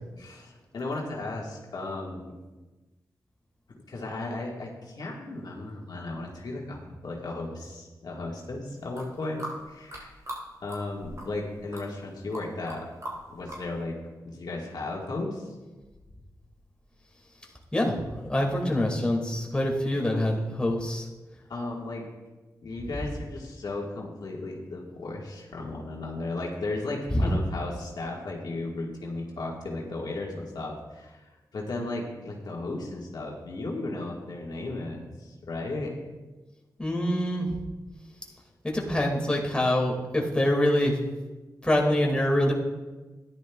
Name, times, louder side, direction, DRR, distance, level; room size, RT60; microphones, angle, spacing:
voice 1, 0.2-2.3 3.9-10.2 10.6-12.9 13.3-14.0 14.2-15.5 21.5-22.1 22.6-31.2 31.5-35.9, left 2 dB, 70° left, -2 dB, 1.6 m, -35 dB
sound 1, 8.8-10.4 10.7-11.5 11.7-12.8 13.0-13.6, right 1 dB, 50° right, 3.4 m, -39 dB
voice 2, 18.3-21.0 27.1-27.3 36.8-37.5 38.6-41.0 41.6-42.5, left 1 dB, 15° left, -1 dB, 2.0 m, -25 dB
13.5 x 10.5 x 2.3 m, 1.2 s
cardioid pair, 60°, 7 cm